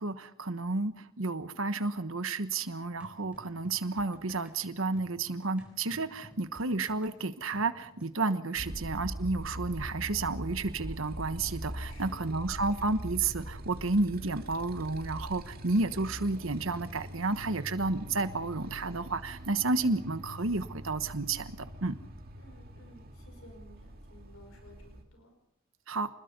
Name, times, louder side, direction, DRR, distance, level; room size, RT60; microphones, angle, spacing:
voice 1, 0.0-22.0 25.9-26.1, right 3 dB, 70° right, 11 dB, 1.2 m, -31 dB
sound 1, 3.0-8.1, right 1 dB, 5° right, 4.1 m, -54 dB
voice 2, 8.5-8.9 11.9-12.2 22.4-25.3, equal, 75° left, 4 dB, 5.3 m, -56 dB
Motorcycle, 8.6-25.0, equal, 45° right, 2.5 m, -43 dB
26.0 x 20.5 x 5.4 m, 0.78 s
head